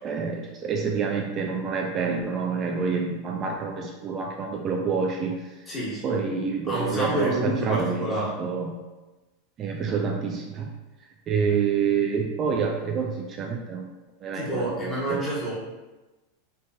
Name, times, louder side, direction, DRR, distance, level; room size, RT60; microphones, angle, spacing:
voice 1, 0.0-5.4 6.0-8.8 9.6-10.7 11.3-13.9 14.2-15.2, right 5 dB, 35° right, 1 dB, 0.4 m, -27 dB
voice 2, 5.7-6.0 6.7-8.4 14.3-15.5, right 1 dB, 20° left, -7 dB, 1.5 m, -28 dB
3.2 x 2.8 x 2.2 m, 1.1 s
hypercardioid pair, 100°, 0 cm